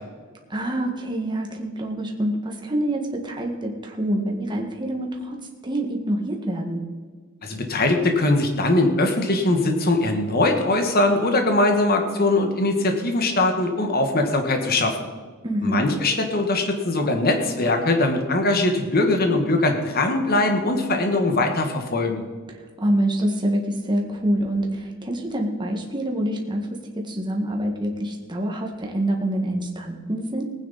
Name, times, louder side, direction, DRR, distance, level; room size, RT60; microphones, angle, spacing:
voice 1, 0.5-5.4 5.6-6.8 15.4-15.8 22.5-26.7 27.0-30.4, right 1 dB, 20° right, 1 dB, 1.8 m, -26 dB
voice 2, 7.4-15.1 15.6-22.2, left 2 dB, 45° left, 4 dB, 1.5 m, -21 dB
19.5 x 9.3 x 4.2 m, 1.5 s
head